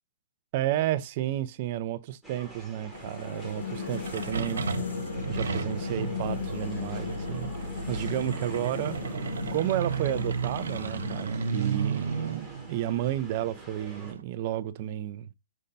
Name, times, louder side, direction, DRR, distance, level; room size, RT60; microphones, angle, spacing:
voice 1, 0.5-4.7 5.2-9.0 9.5-15.3, right 13 dB, 30° right, 0.3 m, -32 dB
sound 1, 2.2-14.1, right 2 dB, ahead, 0.8 m, -47 dB
sound 2, 2.9-12.3, left 5 dB, 65° left, 1.6 m, -37 dB
sound 3, 3.9-14.2, right 5 dB, 75° right, 0.6 m, -34 dB
5.3 x 2.2 x 3.8 m
hypercardioid pair, 175°, 0 cm